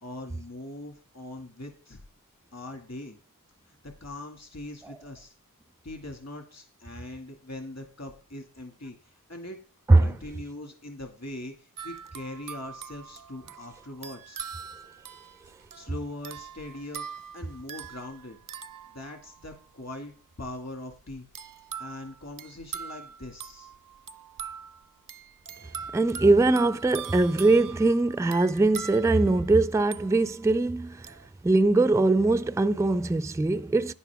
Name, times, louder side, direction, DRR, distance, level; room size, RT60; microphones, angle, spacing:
voice 1, 0.0-2.0 2.5-3.2 3.7-5.3 5.8-9.6 10.0-14.4 15.7-17.0 17.3-18.4 18.9-21.3 21.8-23.7, left 1 dB, 45° left, 2.1 m, -41 dB
sound 1, 11.8-19.6 21.3-30.5 31.0-31.3, right 7 dB, 65° right, 0.6 m, -42 dB
voice 2, 25.9-31.1 31.4-33.9, right 2 dB, 10° right, 0.4 m, -22 dB
11.0 x 9.7 x 3.5 m
wide cardioid pair, 65°, 35 cm